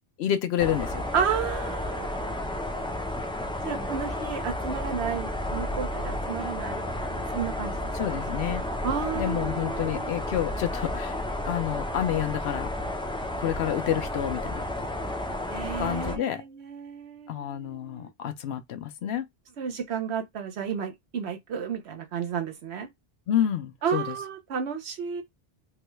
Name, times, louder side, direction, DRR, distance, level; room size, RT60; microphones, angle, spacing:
voice 1, 0.2-1.0 7.9-8.6 9.1-11.2 11.5-12.7 13.4-14.6 15.8-16.4 17.3-19.2 23.3-24.2, left 10 dB, 85° left, 0.9 m, -29 dB
sound 1, 0.6-16.2, left 1 dB, 10° left, 0.4 m, -32 dB
voice 2, 1.1-2.9 3.6-8.2 8.8-10.2 15.5-18.1 19.6-22.9 23.8-25.2, right 7 dB, 85° right, 1.1 m, -32 dB
3.6 x 2.3 x 3.0 m
omnidirectional pair, 1.1 m